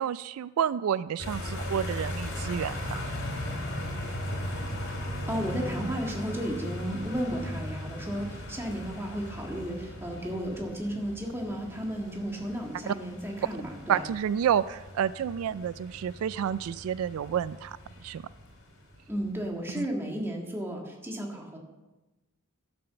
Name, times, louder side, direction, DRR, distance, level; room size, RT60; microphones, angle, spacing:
voice 1, 0.0-3.0 12.9-13.0 13.9-17.8 18.0-18.2 19.8-19.9, right 9 dB, 80° right, 16 dB, 0.3 m, -29 dB
sound 1, 1.2-19.7, left 1 dB, 55° left, 3.0 m, -38 dB
voice 2, 4.9-14.0 19.1-21.6, equal, 10° right, 0 dB, 1.7 m, -34 dB
11.0 x 7.0 x 6.8 m, 1.1 s
head